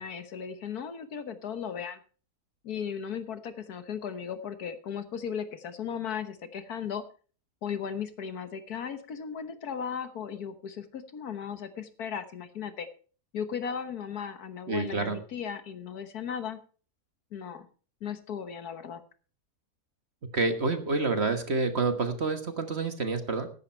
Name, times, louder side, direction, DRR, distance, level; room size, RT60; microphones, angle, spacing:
voice 1, 0.0-2.0 2.6-7.0 7.6-12.9 13.3-16.6 17.3-17.7 18.0-19.0, left 7 dB, 65° left, 10 dB, 1.6 m, -36 dB
voice 2, 14.7-15.2 20.3-23.5, right 3 dB, 40° right, 8 dB, 1.6 m, -28 dB
14.0 x 11.5 x 4.5 m, 0.39 s
omnidirectional pair, 1.8 m